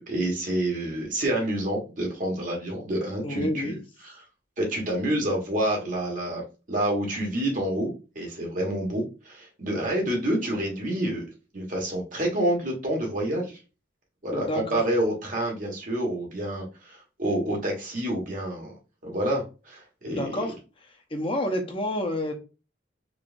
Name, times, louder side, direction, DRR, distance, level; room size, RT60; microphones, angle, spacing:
voice 1, 0.0-3.7 4.0-4.1 4.6-6.4 6.7-11.2 11.5-13.6 14.2-20.4, right 1 dB, 45° right, 0 dB, 1.5 m, -28 dB
voice 2, 3.2-3.8 14.3-14.6 20.0-20.5 21.1-22.3, left 1 dB, 30° left, 3 dB, 0.9 m, -28 dB
4.7 x 3.3 x 2.5 m, 0.32 s
head